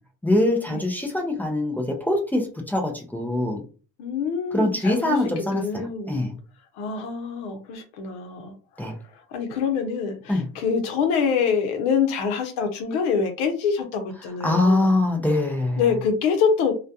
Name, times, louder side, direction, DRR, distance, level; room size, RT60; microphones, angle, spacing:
voice 1, 0.2-3.6 4.5-6.3 8.8-9.0 10.3-10.5 14.4-15.8, left 1 dB, 5° left, 1 dB, 0.4 m, -23 dB
voice 2, 4.0-5.2 5.5-6.2 6.8-8.5 9.3-14.9 15.8-16.7, left 6 dB, 75° left, 4 dB, 0.8 m, -25 dB
2.3 x 2.2 x 2.7 m, 0.36 s
supercardioid pair, 110°, 43 cm